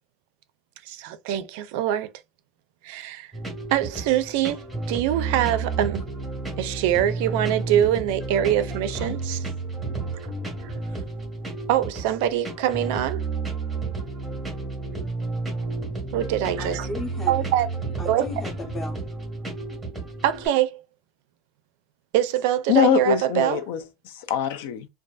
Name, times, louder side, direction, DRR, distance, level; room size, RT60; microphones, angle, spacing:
voice 1, 0.9-2.1 2.8-3.3 3.7-4.6 4.9-6.0 6.6-9.4 10.6-10.7 11.7-13.2 16.1-16.9 17.3-17.7 18.0-18.2 20.2-20.8 22.1-23.6, right 11 dB, 65° right, 0.4 m, -24 dB
sound 1, 3.3-20.5, right 3 dB, 5° right, 0.9 m, -31 dB
voice 2, 16.6-17.4 18.0-19.3, left 2 dB, 15° left, 0.6 m, -36 dB
voice 3, 22.7-24.9, left 9 dB, 75° left, 0.4 m, -23 dB
2.6 x 2.3 x 2.3 m
cardioid pair, 175°, 0 cm